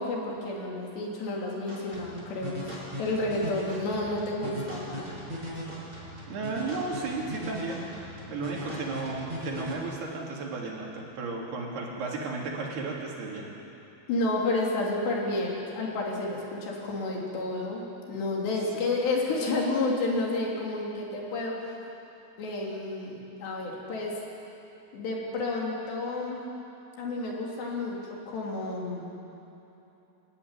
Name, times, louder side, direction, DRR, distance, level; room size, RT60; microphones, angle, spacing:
voice 1, 0.0-5.2 14.1-21.6 22.4-24.1 24.9-26.4 27.0-28.0 28.3-29.1, left 2 dB, 90° left, -2 dB, 5.3 m, -30 dB
sound 1, 1.7-9.7, equal, 10° right, 6.8 m, -39 dB
voice 2, 6.3-7.8 8.3-13.5, right 3 dB, 75° right, -2 dB, 4.9 m, -34 dB
25.5 x 13.5 x 9.7 m, 3.0 s
omnidirectional pair, 4.7 m